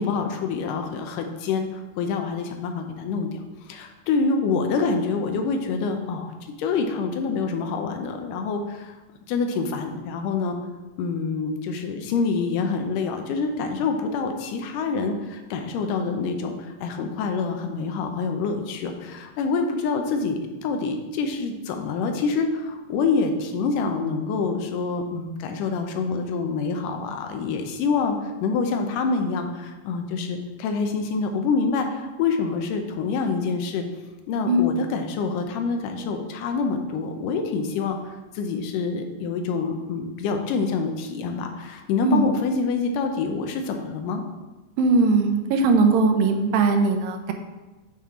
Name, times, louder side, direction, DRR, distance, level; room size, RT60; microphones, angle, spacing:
voice 1, 0.0-3.4 3.7-6.3 6.6-8.9 9.3-10.6 11.0-33.9 34.3-38.0 38.3-44.2, left 4 dB, 80° left, 5 dB, 2.2 m, -26 dB
voice 2, 44.8-47.3, right 3 dB, 90° right, 5 dB, 2.4 m, -19 dB
9.0 x 4.6 x 3.7 m, 1.1 s
omnidirectional pair, 4.0 m